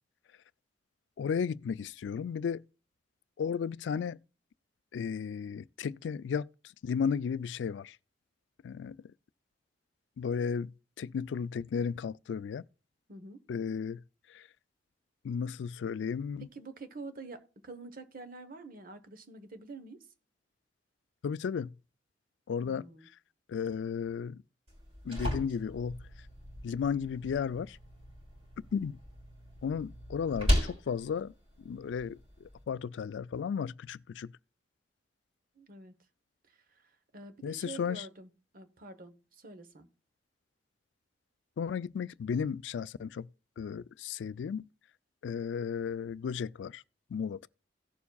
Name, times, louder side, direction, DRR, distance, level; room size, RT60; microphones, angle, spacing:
voice 1, 1.2-2.6 3.4-4.2 4.9-6.5 6.8-8.0 8.6-9.0 10.2-10.7 11.0-12.6 13.5-14.0 14.3-14.4 15.2-16.5 21.2-21.7 22.5-22.9 23.5-24.4 25.0-26.0 26.6-27.8 28.7-29.0 29.6-31.3 31.6-32.2 32.7-34.3 37.4-38.0 41.6-43.3 43.6-44.7 45.2-46.8 47.1-47.5, left 6 dB, 80° left, 0.3 m, -34 dB
voice 2, 13.1-13.4 16.5-20.1 22.6-23.1 35.6-35.9 36.5-39.9, right 3 dB, 50° right, 1.0 m, -47 dB
sound 1, 24.7-32.6, equal, 35° right, 3.0 m, -36 dB
17.0 x 7.0 x 2.3 m
head